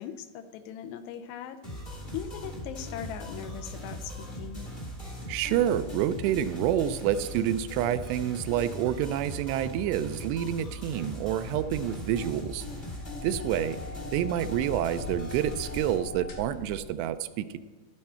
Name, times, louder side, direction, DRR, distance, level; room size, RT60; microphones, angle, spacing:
voice 1, 0.0-1.8 2.1-4.6, left 9 dB, 80° left, 9 dB, 2.6 m, -40 dB
sound 1, 1.6-15.9, equal, 45° left, 0.7 m, -39 dB
voice 2, 5.3-12.7 13.2-13.8 14.1-17.6, right 11 dB, 85° right, 12 dB, 2.5 m, -28 dB
sound 2, 11.3-16.8, left 4 dB, 60° left, 1.6 m, -43 dB
13.0 x 12.5 x 4.3 m, 1.3 s
omnidirectional pair, 5.2 m